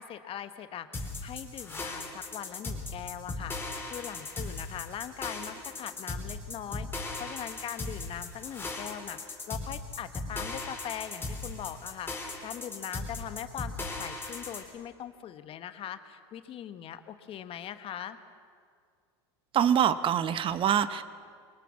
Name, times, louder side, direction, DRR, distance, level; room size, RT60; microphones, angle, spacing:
voice 1, 0.0-3.5 3.8-12.1 12.4-18.2, left 10 dB, 40° left, 10 dB, 1.2 m, -41 dB
sound 1, 0.9-14.6, left 3 dB, 15° left, 4.2 m, -38 dB
voice 2, 19.5-21.0, right 9 dB, 40° right, 13 dB, 0.8 m, -25 dB
23.0 x 19.5 x 7.3 m, 2.1 s
supercardioid pair, 105°, 14 cm